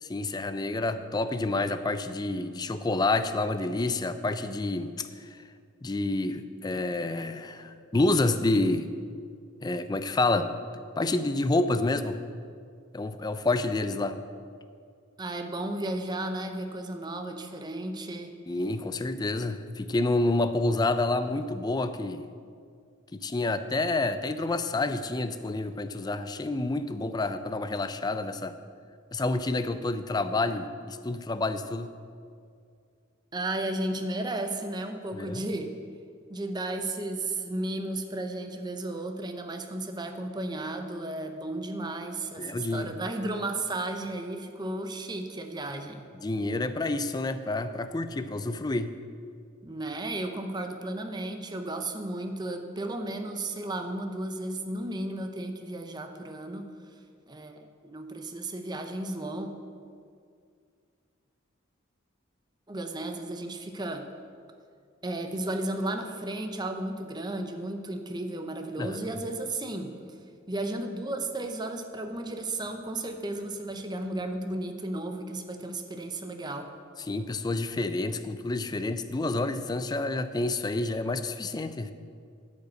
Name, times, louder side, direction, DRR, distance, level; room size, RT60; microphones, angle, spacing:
voice 1, 0.0-5.4 5.8-8.9 9.6-10.5 11.0-12.2 12.9-14.2 18.5-22.3 23.1-28.6 29.1-31.9 35.1-35.5 42.4-42.9 46.2-49.0 68.8-69.0 77.0-81.9, left 2 dB, 20° left, 11 dB, 0.4 m, -28 dB
voice 2, 15.2-18.3 33.3-35.7 36.3-46.1 49.6-56.6 57.3-59.5 62.7-64.1 65.0-70.0 70.5-76.7, right 2 dB, 20° right, 6 dB, 0.7 m, -34 dB
10.5 x 5.2 x 8.2 m, 2.2 s
head